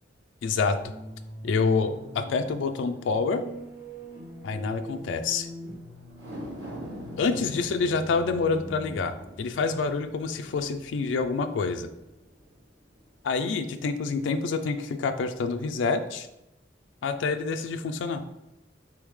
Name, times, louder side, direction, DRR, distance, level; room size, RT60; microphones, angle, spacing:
voice 1, 0.4-0.9 1.4-3.4 4.4-5.5 7.2-11.9 13.2-16.3 17.0-18.2, left 4 dB, 85° left, 8 dB, 0.3 m, -27 dB
sound 1, 0.8-10.7, equal, 5° right, 1.2 m, -43 dB
sound 2, 6.1-12.6 13.0-13.1, equal, 85° right, 1.4 m, -44 dB
4.2 x 3.5 x 3.1 m, 0.91 s
head